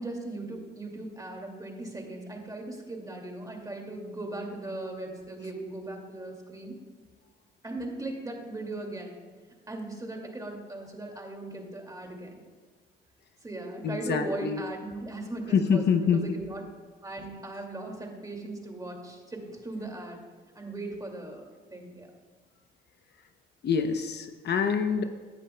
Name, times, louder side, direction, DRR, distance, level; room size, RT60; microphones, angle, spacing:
voice 1, 0.0-6.7 7.6-9.2 9.7-12.3 13.4-16.6 17.0-20.2 20.6-21.5 21.7-22.1, right 2 dB, 20° right, 1 dB, 2.3 m, -38 dB
voice 2, 13.8-14.6 15.5-16.3 23.6-25.0, left 6 dB, 55° left, 7 dB, 0.8 m, -25 dB
16.5 x 10.5 x 2.3 m, 1.5 s
cardioid pair, 90°, 20 cm